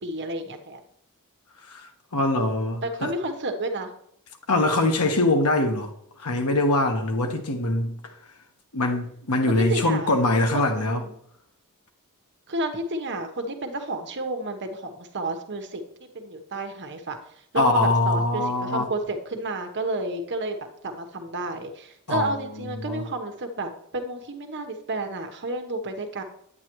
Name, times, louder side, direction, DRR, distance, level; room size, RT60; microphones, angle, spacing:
voice 1, 0.0-0.8 2.8-3.9 9.7-10.1 10.5-11.2 12.5-15.8 16.1-17.2 17.5-20.6 20.8-26.2, right 2 dB, 55° right, 1.1 m, -31 dB
voice 2, 1.7-3.1 4.5-5.9 6.2-7.9 8.7-11.0 17.5-18.9 22.1-23.0, left 2 dB, 80° left, 1.3 m, -23 dB
9.9 x 8.6 x 3.1 m
head